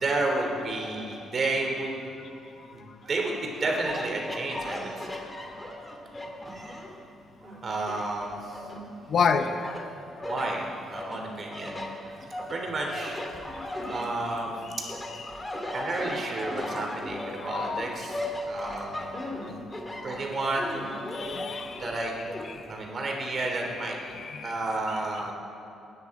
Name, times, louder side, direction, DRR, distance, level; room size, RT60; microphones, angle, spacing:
voice 1, 0.0-1.9 2.7-5.5 6.5-6.9 7.4-8.7 9.6-9.8 10.2-13.2 13.8-14.6 15.6-19.4 20.0-20.9 21.2-21.4 21.8-22.2 22.7-25.3, right 2 dB, 45° right, 1 dB, 3.0 m, -32 dB
sound 1, 3.5-7.0 7.4-9.2 9.6-10.5 10.9-14.6 14.9-22.5, left 1 dB, 15° left, 2.3 m, -37 dB
voice 2, 9.1-9.9 13.5-13.7 17.3-17.9 19.3-19.4 21.1-21.8 22.5-22.6 24.1-24.5 25.3-25.4, left 6 dB, 55° left, 9 dB, 0.8 m, -29 dB
19.0 x 10.0 x 4.8 m, 2.9 s
cardioid pair, 90°, 0 cm